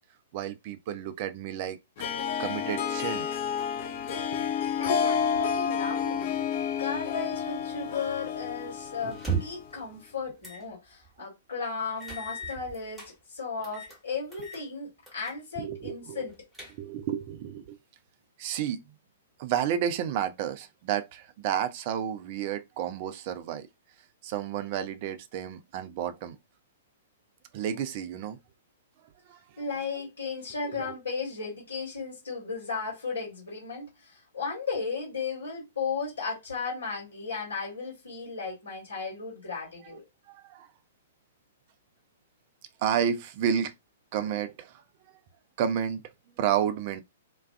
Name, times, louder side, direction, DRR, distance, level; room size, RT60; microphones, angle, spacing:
voice 1, 0.3-1.8 2.4-3.3 4.3-4.5 9.0-9.2 15.5-16.3 16.8-17.8 18.4-18.8 19.4-23.7 24.2-26.4 27.5-28.4 29.3-29.6 30.7-31.0 40.3-40.7 42.8-43.7 44.1-44.8 45.6-46.0 46.4-47.0, right 9 dB, 40° right, 0.4 m, -31 dB
Harp, 2.0-9.7, left 7 dB, 45° left, 0.5 m, -30 dB
voice 2, 4.8-6.4 6.8-16.3 29.6-40.0, left 5 dB, 70° left, 1.3 m, -35 dB
sound 1, 9.1-9.7 10.4-10.7 11.1-11.2 12.0-13.1 13.6-14.0 14.3-14.6 15.1-15.4 15.7-15.8 16.3-17.1, right 5 dB, 5° right, 1.0 m, -35 dB
2.3 x 2.3 x 2.3 m
figure-of-eight pair, 110°, 0 cm